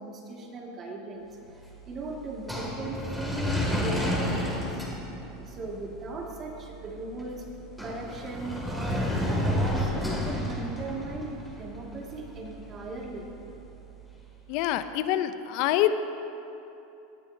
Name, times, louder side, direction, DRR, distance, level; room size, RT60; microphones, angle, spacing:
voice 1, 0.0-4.8 5.4-7.5 7.8-9.9 10.2-13.3, right 2 dB, 35° right, -1 dB, 2.1 m, -38 dB
sound 1, 1.4-14.5, equal, ahead, 2.3 m, -33 dB
voice 2, 14.5-15.9, left 13 dB, 60° left, 11 dB, 0.5 m, -26 dB
17.5 x 10.0 x 2.8 m, 2.9 s
hypercardioid pair, 110°, 0 cm